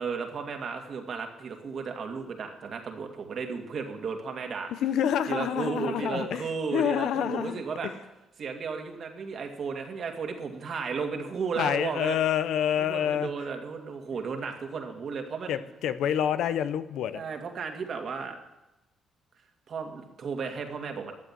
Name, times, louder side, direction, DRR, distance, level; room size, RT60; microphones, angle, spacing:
voice 1, 0.0-4.7 5.3-7.9 8.4-12.2 12.8-15.6 17.1-18.4 19.7-21.1, right 5 dB, 55° right, 4 dB, 2.2 m, -34 dB
voice 2, 4.7-7.9 11.6-13.3 15.5-17.2, left 9 dB, 80° left, 13 dB, 0.7 m, -28 dB
13.0 x 7.8 x 9.9 m, 0.98 s
cardioid pair, 90°, 0 cm